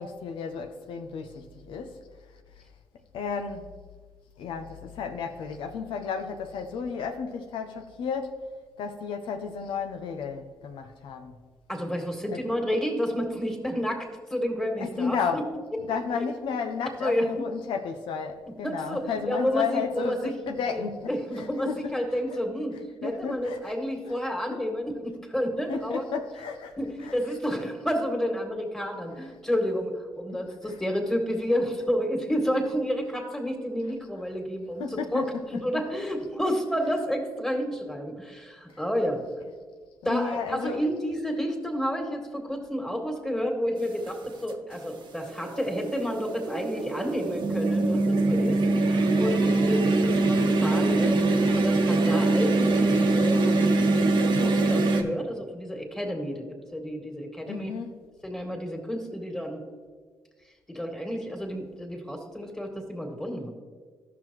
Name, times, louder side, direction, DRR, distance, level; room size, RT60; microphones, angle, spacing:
voice 1, 0.0-2.0 3.1-3.7 4.4-8.5 8.8-11.4 12.3-12.4 14.8-15.5 15.8-21.9 22.3-22.4 23.0-23.7 24.1-24.2 24.5-24.6 25.7-27.2 30.6-30.8 34.8-35.8 38.7-38.8 40.0-40.8 57.5-58.0, left 6 dB, 80° left, 0.6 m, -33 dB
voice 2, 11.7-15.4 17.0-17.3 18.6-20.3 20.7-20.8 21.1-26.0 26.8-39.2 40.1-56.5 56.7-57.7 58.2-59.6 60.7-63.5, equal, 5° left, 1.9 m, -30 dB
sound 1, 44.1-44.2 45.3-55.0, right 2 dB, 65° right, 1.0 m, -23 dB
13.5 x 5.9 x 3.1 m
supercardioid pair, 65°, 9 cm